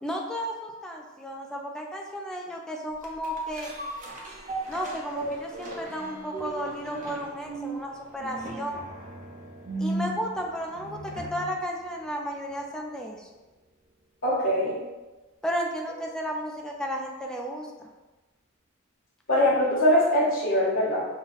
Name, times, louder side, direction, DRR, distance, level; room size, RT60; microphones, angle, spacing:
voice 1, 0.0-3.7 4.7-8.8 9.8-13.3 15.4-17.9, equal, 5° left, 0 dB, 0.4 m, -33 dB
sound 1, 3.0-11.6 12.0-12.1, right 1 dB, 40° right, 0.8 m, -36 dB
voice 2, 14.2-14.8 19.3-21.1, equal, 60° left, -7 dB, 1.1 m, -22 dB
5.5 x 2.2 x 4.0 m, 1.2 s
head